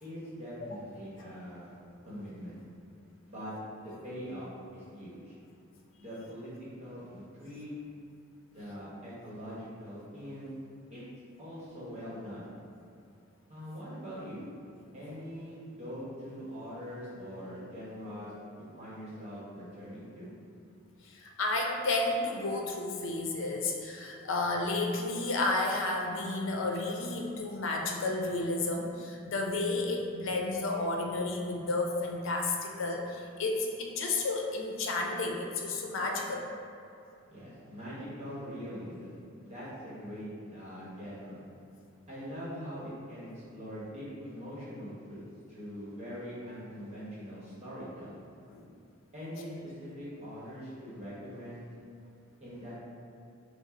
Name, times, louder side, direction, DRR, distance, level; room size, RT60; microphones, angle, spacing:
voice 1, 0.0-1.7 2.0-2.6 3.2-3.5 3.8-5.3 6.0-6.5 6.8-7.8 8.5-10.5 10.9-11.0 11.4-12.5 13.5-14.5 14.9-20.3 37.3-41.4 42.1-45.2 45.5-48.2 49.1-51.6 52.4-52.8, equal, 35° right, -9 dB, 1.1 m, -43 dB
voice 2, 21.0-36.4 48.5-48.6, left 2 dB, 65° left, 1 dB, 0.6 m, -32 dB
6.1 x 2.0 x 3.7 m, 2.5 s
head